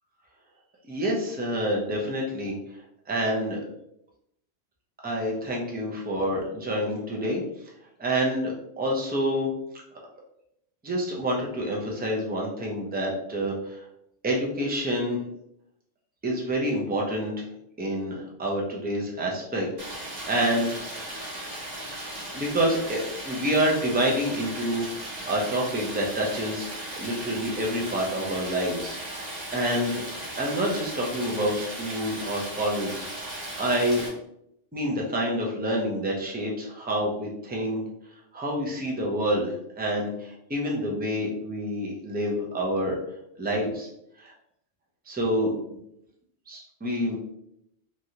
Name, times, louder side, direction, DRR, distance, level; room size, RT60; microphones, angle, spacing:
voice 1, 0.9-2.5 3.1-3.6 5.0-7.4 8.0-9.5 10.8-13.8 14.2-15.2 16.2-17.5 17.8-19.7 20.0-20.7 22.3-26.7 27.0-30.0 30.4-33.1 33.6-34.0 34.7-37.8 38.3-43.0 43.4-43.9 44.2-44.3 45.1-45.5 46.5-47.2, equal, 15° right, -2 dB, 0.3 m, -27 dB
Stream, 19.8-34.1, right 1 dB, 40° right, 0.9 m, -37 dB
3.2 x 2.5 x 2.7 m, 0.78 s
omnidirectional pair, 1.2 m